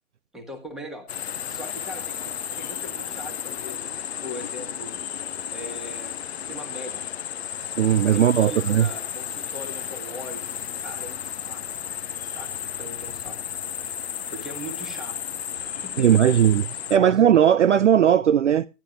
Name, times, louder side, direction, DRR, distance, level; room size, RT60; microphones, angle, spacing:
voice 1, 0.3-5.0 5.5-7.0 8.1-10.5 10.8-11.6 12.1-13.4 13.8-15.2 15.5-16.4 16.9-17.3, equal, ahead, 1.3 m, -40 dB
sound 1, 1.1-17.0, left 9 dB, 45° left, 0.5 m, -33 dB
voice 2, 7.8-8.9 16.0-16.6 16.9-18.7, right 9 dB, 50° right, 0.5 m, -17 dB
16.0 x 11.5 x 2.4 m
figure-of-eight pair, 140°, 46 cm